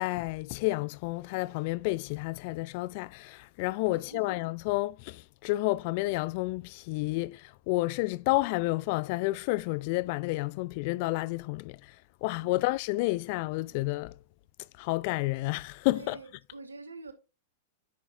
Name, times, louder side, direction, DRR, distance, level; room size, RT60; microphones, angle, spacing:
voice 1, 0.0-11.9 12.2-14.2 14.8-16.2, left 21 dB, 50° left, 0.3 m, -30 dB
voice 2, 3.9-4.2 12.4-12.6 15.9-17.1, right 3 dB, 85° right, 1.5 m, -45 dB
10.0 x 7.0 x 2.5 m
figure-of-eight pair, 95°, 0 cm